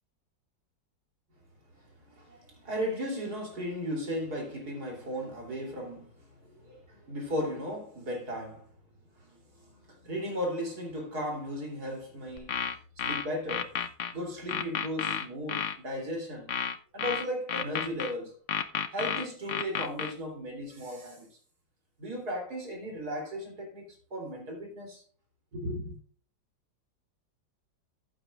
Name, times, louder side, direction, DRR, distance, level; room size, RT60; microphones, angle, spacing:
voice 1, 2.0-8.7 9.2-12.5 13.0-13.7 14.1-16.5 16.9-18.4 18.9-21.4 22.0-25.0 25.5-26.0, equal, 55° right, 3.7 m, -36 dB
sound 1, 12.4-14.1 14.5-15.8 16.5-18.1 18.5-20.1, left 8 dB, 55° left, 0.9 m, -31 dB
14.5 x 8.7 x 2.4 m
omnidirectional pair, 1.9 m